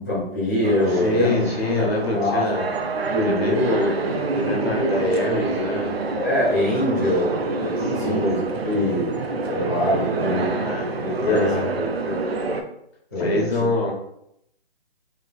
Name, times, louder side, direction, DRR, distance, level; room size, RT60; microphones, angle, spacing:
voice 1, 0.0-1.5 1.8-2.4 3.1-3.9 6.1-10.6 11.0-12.2 13.1-13.4, left 1 dB, 20° left, -10 dB, 0.7 m, -24 dB
sound 1, 0.6-12.6, right 3 dB, 75° right, 0.5 m, -27 dB
voice 2, 1.0-2.7 3.2-4.0 4.3-6.2 7.8-8.3 10.6-10.9 11.2-11.7 13.2-13.9, left 2 dB, 75° left, -1 dB, 1.1 m, -25 dB
3.2 x 3.1 x 2.2 m, 0.74 s
hypercardioid pair, 180°, 31 cm